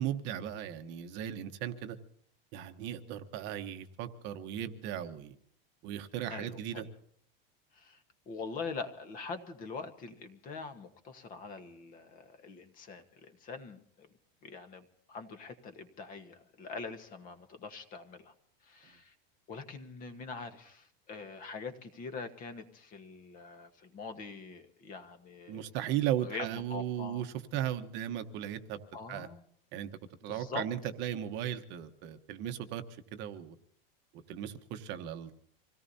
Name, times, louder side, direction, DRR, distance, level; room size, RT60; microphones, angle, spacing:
voice 1, 0.0-2.0 2.5-5.3 5.8-6.8 25.5-27.3 27.5-28.8 29.1-29.3 29.7-29.9 30.2-32.8 33.1-33.5 34.3-35.3, right 11 dB, 40° right, 1.0 m, -36 dB
voice 2, 6.3-6.9 7.7-14.1 14.4-18.3 18.6-19.1 19.5-25.7 26.2-27.2 28.9-29.4 30.3-30.7, left 4 dB, 30° left, 1.3 m, -44 dB
26.0 x 17.5 x 2.8 m
supercardioid pair, 165°, 29 cm